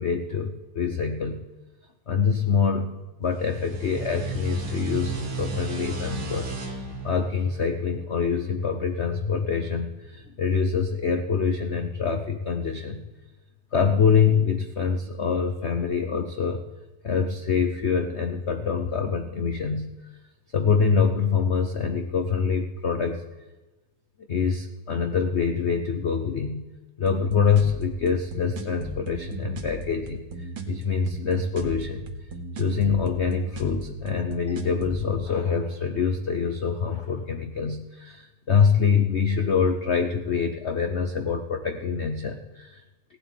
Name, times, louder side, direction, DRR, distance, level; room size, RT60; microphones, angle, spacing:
voice 1, 0.0-1.4 2.1-13.0 13.7-16.6 17.0-20.1 20.5-23.2 24.3-26.7 27.0-32.0 32.5-42.8, left 6 dB, 65° left, 6 dB, 0.6 m, -25 dB
sound 1, 3.3-8.6, right 3 dB, 80° right, 3.1 m, -34 dB
sound 2, 27.1-35.1, right 2 dB, 55° right, 1.9 m, -36 dB
16.5 x 8.4 x 9.3 m, 1.1 s
omnidirectional pair, 2.3 m